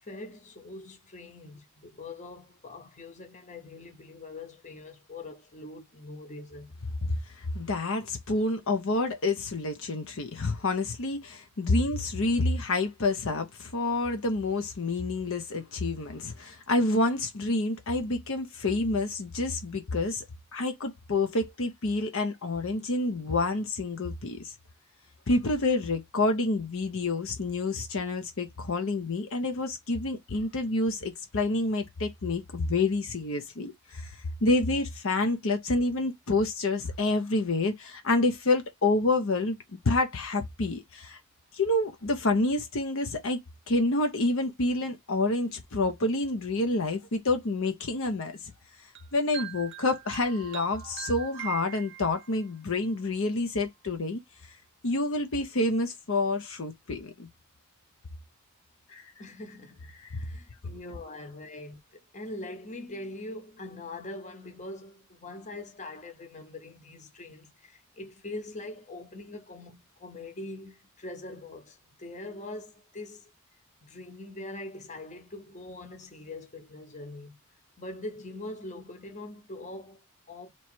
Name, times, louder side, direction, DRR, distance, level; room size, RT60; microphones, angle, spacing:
voice 1, 0.0-6.7 59.2-73.3 73.8-77.4 77.8-80.5, left 2 dB, 35° left, 1.0 m, -43 dB
voice 2, 7.4-20.2 20.5-24.5 25.3-39.6 39.8-41.2 41.5-43.4 43.7-48.5 49.1-54.2 54.8-57.3 58.9-59.0 60.0-60.2, left 2 dB, 60° left, 0.8 m, -28 dB
sound 1, 48.9-52.4, right 11 dB, 50° right, 0.6 m, -42 dB
3.2 x 3.0 x 4.4 m
head